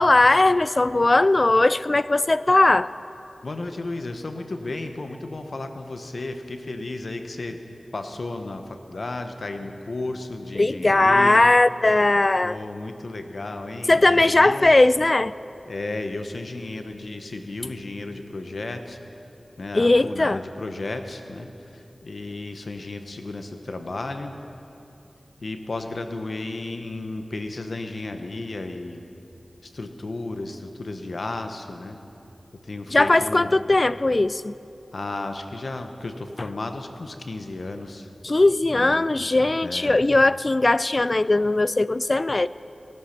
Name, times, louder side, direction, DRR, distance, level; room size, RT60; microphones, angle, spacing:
voice 1, 0.0-2.9 10.6-12.6 13.9-15.3 19.7-20.4 32.9-34.5 38.2-42.5, left 2 dB, 45° left, 17 dB, 0.3 m, -19 dB
voice 2, 3.4-7.6 7.9-11.5 12.4-14.7 15.7-19.0 19.6-24.4 25.4-29.0 29.6-32.0 32.6-33.6 34.9-38.1 38.7-39.0 39.6-40.0, left 2 dB, 70° left, 6 dB, 1.1 m, -33 dB
17.5 x 12.0 x 5.9 m, 2.8 s
wide cardioid pair, 65°, 0 cm